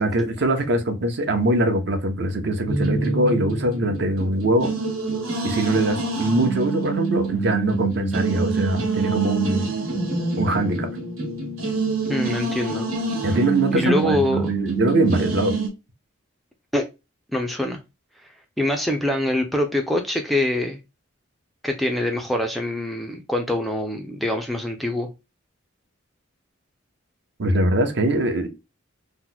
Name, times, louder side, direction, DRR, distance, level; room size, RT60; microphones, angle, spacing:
voice 1, 0.0-4.7 5.4-9.7 10.4-10.9 13.2-15.5 27.4-28.5, right 1 dB, 55° right, 0.6 m, -22 dB
sound 1, 2.7-15.7, right 3 dB, 85° right, 1.2 m, -26 dB
voice 2, 12.1-12.9 13.2-13.4 13.7-14.5 16.7-16.8 17.3-17.8 18.6-20.8 21.6-25.1, left 1 dB, ahead, 0.3 m, -24 dB
2.9 x 2.1 x 3.8 m
head